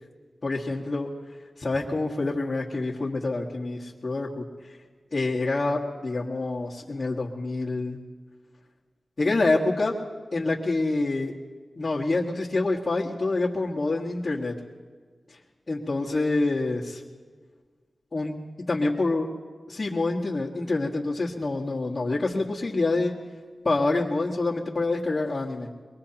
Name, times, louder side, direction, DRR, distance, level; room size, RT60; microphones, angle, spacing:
voice 1, 0.4-1.1 1.6-4.4 5.1-8.0 9.2-10.0 10.3-11.3 11.8-14.5 15.7-17.0 18.1-18.4 18.7-19.3 19.7-23.1 23.6-25.7, left 2 dB, 45° left, -6 dB, 1.6 m, -26 dB
23.0 x 21.5 x 2.9 m, 1.5 s
wide cardioid pair, 70°, 0 cm